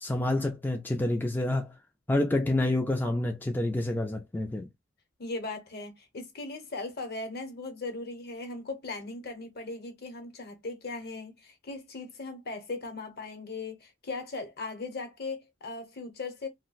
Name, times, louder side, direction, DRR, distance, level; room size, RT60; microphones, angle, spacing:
voice 1, 0.0-1.7 2.1-4.7, left 1 dB, 10° left, 0.3 m, -28 dB
voice 2, 5.2-16.5, left 3 dB, 55° left, 0.9 m, -38 dB
2.4 x 2.1 x 3.8 m
head